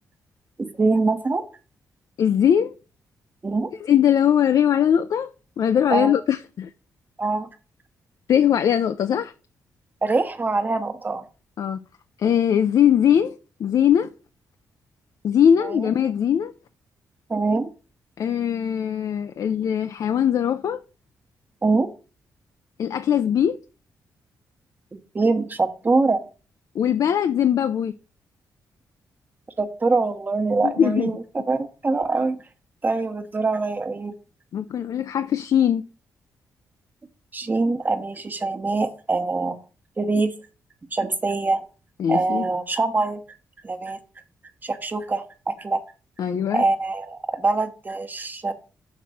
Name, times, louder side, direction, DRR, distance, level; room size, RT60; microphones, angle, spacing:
voice 1, 0.6-1.4 3.4-3.7 5.9-6.1 7.2-7.5 10.0-11.2 15.6-15.9 17.3-17.7 21.6-21.9 24.9-26.2 29.6-32.4 32.8-34.2 37.3-39.6 40.0-40.3 40.9-41.6 42.1-43.2 43.6-44.0 44.6-45.8 46.5-48.5, right 3 dB, 30° right, 1.1 m, -24 dB
voice 2, 2.2-2.8 3.8-5.3 5.6-6.7 8.3-9.3 11.6-11.8 12.2-14.1 15.2-16.5 18.2-20.8 22.8-23.6 26.7-27.9 30.6-31.1 34.5-35.8 42.0-42.5 46.2-46.6, left 9 dB, 65° left, 0.5 m, -20 dB
6.0 x 4.1 x 6.1 m
cardioid pair, 85°, 7 cm